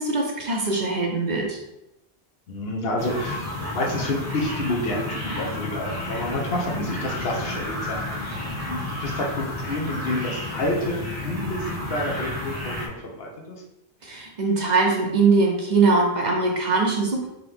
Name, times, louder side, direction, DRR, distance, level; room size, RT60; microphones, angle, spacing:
voice 1, 0.0-1.6 14.0-17.3, right 3 dB, 50° right, 0 dB, 0.7 m, -21 dB
voice 2, 2.5-8.4 8.6-12.9 13.2-13.6, left 1 dB, 70° left, -1 dB, 1.0 m, -29 dB
sound 1, 3.0-12.9, left 1 dB, 15° right, 0.8 m, -31 dB
3.9 x 2.9 x 3.4 m, 0.90 s
omnidirectional pair, 1.1 m